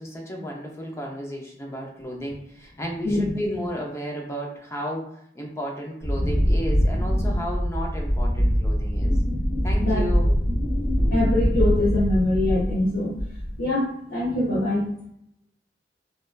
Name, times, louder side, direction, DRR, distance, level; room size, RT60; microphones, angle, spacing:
voice 1, 0.0-9.2 9.6-10.3, equal, 15° left, 0 dB, 0.4 m, -33 dB
Wind, 6.0-12.8 13.2-13.6, equal, 65° left, 1.4 m, -23 dB
voice 2, 11.1-13.2 13.6-14.8, left 1 dB, 90° left, -9 dB, 1.0 m, -23 dB
3.0 x 2.2 x 2.2 m, 0.71 s
head